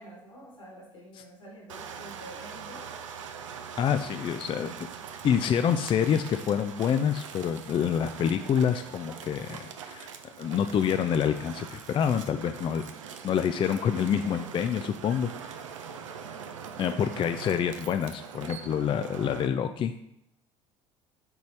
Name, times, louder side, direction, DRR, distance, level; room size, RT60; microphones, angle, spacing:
voice 1, 0.0-3.0 16.8-17.3, equal, 85° left, -8 dB, 2.6 m, -48 dB
sound 1, 1.7-19.5, right 7 dB, 75° right, 0.6 m, -42 dB
voice 2, 3.8-4.7 5.2-12.8 13.2-15.3 16.8-19.9, left 8 dB, 30° left, 9 dB, 0.4 m, -27 dB
9.1 x 4.0 x 3.3 m, 0.78 s
figure-of-eight pair, 60°, 16 cm